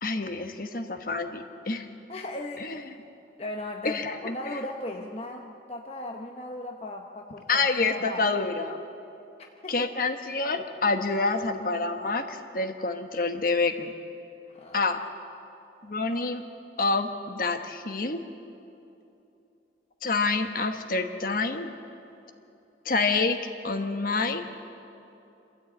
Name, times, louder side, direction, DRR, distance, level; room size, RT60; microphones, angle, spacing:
voice 1, 0.0-1.9 2.6-2.8 3.8-4.1 7.5-8.8 9.7-13.9 14.7-15.0 15.8-16.4 16.8-18.2 20.0-21.7 22.8-23.4 23.6-24.4, left 3 dB, 50° left, 6 dB, 1.2 m, -27 dB
voice 2, 2.1-2.8 3.4-8.2 9.6-9.9 14.5-14.8, left 2 dB, 35° left, 2 dB, 0.9 m, -37 dB
26.5 x 13.5 x 8.6 m, 2.8 s
head